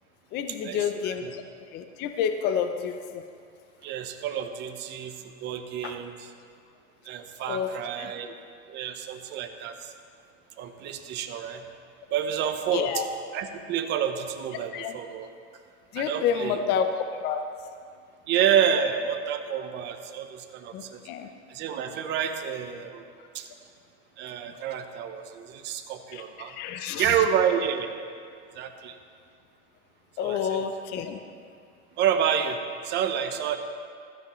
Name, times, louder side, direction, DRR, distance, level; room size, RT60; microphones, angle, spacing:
voice 1, 0.3-1.4 1.7-3.2 5.8-5.9 7.5-7.7 8.0-8.1 12.7-13.1 14.7-15.0 15.9-16.9 17.2-17.4 20.7-21.3 26.1-27.2 30.2-31.2, left 8 dB, 30° left, 7 dB, 0.6 m, -29 dB
voice 2, 3.8-6.3 7.0-8.3 8.7-9.9 10.6-11.6 12.1-13.0 13.3-15.3 16.0-16.6 18.3-21.0 21.5-23.0 23.3-23.5 24.2-26.5 27.0-27.9 28.5-29.0 30.2-30.6 32.0-33.6, right 8 dB, 30° right, 6 dB, 0.9 m, -29 dB
15.5 x 13.0 x 3.1 m, 2.2 s
supercardioid pair, 140°, 36 cm